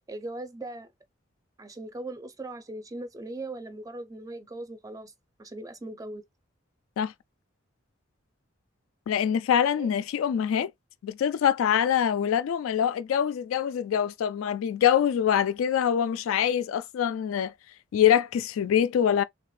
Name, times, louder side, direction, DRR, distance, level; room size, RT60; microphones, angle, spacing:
voice 1, 0.1-0.9 1.6-5.1 5.4-6.2 9.8-9.9, right 2 dB, 15° right, 0.4 m, -39 dB
voice 2, 9.1-10.7 11.0-17.5 17.9-19.2, left 9 dB, 80° left, 0.3 m, -24 dB
3.3 x 2.3 x 3.1 m
head